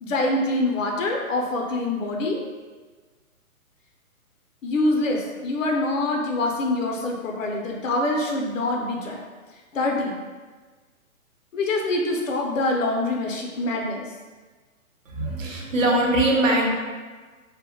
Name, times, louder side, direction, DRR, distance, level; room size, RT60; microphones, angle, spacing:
voice 1, 0.0-2.4 4.6-9.2 9.7-10.2 11.5-14.0, left 2 dB, 60° left, 0 dB, 0.6 m, -25 dB
voice 2, 15.1-16.7, right 1 dB, 60° right, -2 dB, 0.8 m, -21 dB
3.5 x 2.0 x 2.3 m, 1.4 s
hypercardioid pair, 155°, 44 cm